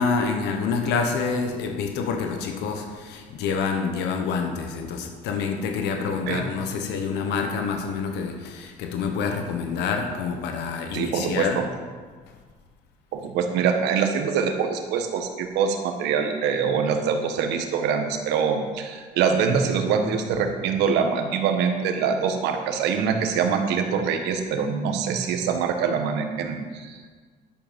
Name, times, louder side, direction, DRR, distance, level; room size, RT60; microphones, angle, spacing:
voice 1, 0.0-11.7, left 5 dB, 85° left, 4 dB, 1.2 m, -27 dB
voice 2, 10.9-11.7 13.1-27.1, right 6 dB, 90° right, 5 dB, 1.3 m, -24 dB
11.5 x 7.9 x 5.2 m, 1.5 s
cardioid pair, 110°, 17 cm